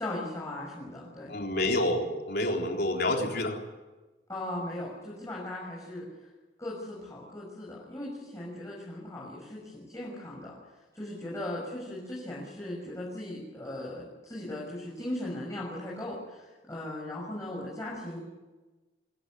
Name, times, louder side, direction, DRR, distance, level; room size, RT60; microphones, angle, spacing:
voice 1, 0.0-1.3 4.3-6.1 6.6-10.6 10.9-18.2, left 1 dB, 20° left, -5 dB, 6.6 m, -38 dB
voice 2, 1.3-3.6, left 1 dB, 65° left, 2 dB, 3.9 m, -28 dB
25.5 x 17.0 x 9.9 m, 1.2 s
head